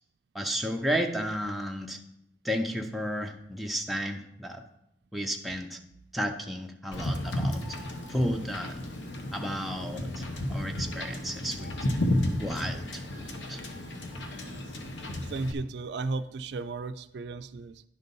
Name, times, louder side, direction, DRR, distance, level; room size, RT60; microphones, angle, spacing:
voice 1, 0.3-2.0 2.4-4.6 5.1-5.8 6.1-7.6 8.1-8.8 9.3-11.7 12.4-13.6, equal, ahead, 2 dB, 0.5 m, -33 dB
Wind / Boat Water vehicle, 6.9-15.5, left 1 dB, 85° left, 1.0 m, -33 dB
voice 2, 15.3-17.8, right 3 dB, 70° right, 12 dB, 0.3 m, -35 dB
11.0 x 4.0 x 5.4 m, 0.83 s
head